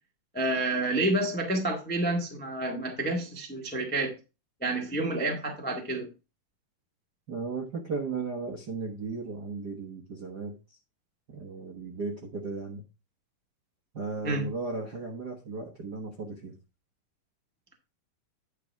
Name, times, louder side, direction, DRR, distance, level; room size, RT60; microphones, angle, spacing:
voice 1, 0.3-4.1 4.6-6.1 14.2-14.4, right 2 dB, 15° left, 0.3 m, -29 dB
voice 2, 7.3-10.8 11.3-12.8 13.9-16.5, right 4 dB, 65° right, 1.0 m, -36 dB
10.0 x 4.9 x 4.6 m
omnidirectional pair, 3.9 m